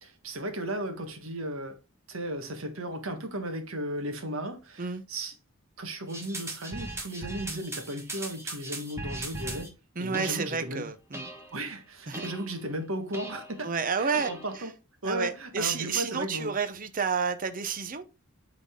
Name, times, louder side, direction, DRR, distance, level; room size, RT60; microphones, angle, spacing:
voice 1, 0.0-1.8 2.1-5.3 5.8-10.9 11.5-13.7 14.0-14.7 15.0-16.5, right 1 dB, 85° right, 1.5 m, -35 dB
sound 1, 6.1-9.7 10.1-10.7 11.1-11.6 12.1-12.7 13.1-13.6 14.1-14.7, right 2 dB, 15° right, 1.3 m, -39 dB
voice 2, 10.0-11.3 12.1-12.3 13.6-14.3 15.0-18.0, right 5 dB, 40° right, 0.7 m, -30 dB
8.5 x 4.0 x 3.7 m
head